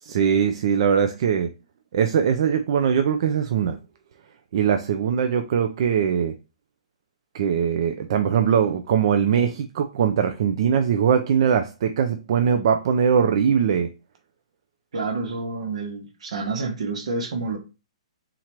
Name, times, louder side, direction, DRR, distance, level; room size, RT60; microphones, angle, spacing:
voice 1, 0.0-1.5 1.9-3.8 4.5-6.3 7.3-13.9, right 7 dB, 55° right, 0.4 m, -21 dB
voice 2, 14.9-17.6, right 3 dB, 70° right, 1.3 m, -28 dB
3.8 x 2.9 x 4.5 m
hypercardioid pair, 150°, 3 cm